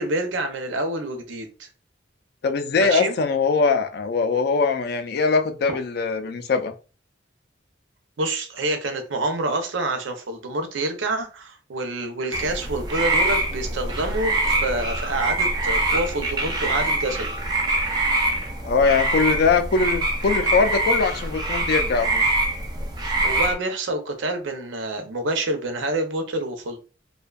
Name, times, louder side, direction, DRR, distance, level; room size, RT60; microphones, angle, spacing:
voice 1, 0.0-1.7 2.8-3.1 8.2-17.4 23.2-26.8, right 2 dB, 85° right, 0.6 m, -27 dB
voice 2, 2.4-6.7 18.6-22.3, left 4 dB, 55° left, 0.3 m, -21 dB
sound 1, 12.3-23.5, right 2 dB, 20° right, 0.4 m, -24 dB
2.5 x 2.2 x 2.3 m
head